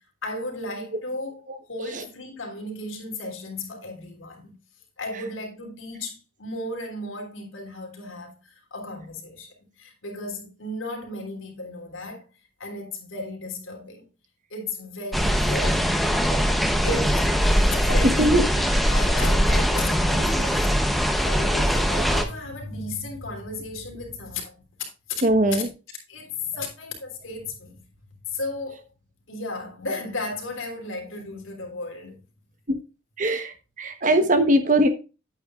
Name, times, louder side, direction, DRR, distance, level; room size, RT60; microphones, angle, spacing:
voice 1, 0.2-4.6 5.0-12.2 12.6-14.0 14.5-16.0 16.8-24.6 25.5-25.6 26.1-27.8 28.3-28.9 29.3-32.2, left 2 dB, 90° left, 3.2 m, -35 dB
sound 1, 15.1-22.2, equal, ahead, 0.8 m, -21 dB
voice 2, 17.9-18.4 25.2-25.7 32.7-32.8 33.2-33.5 33.8-34.9, right 1 dB, 40° right, 1.1 m, -20 dB
9.1 x 9.1 x 2.4 m
head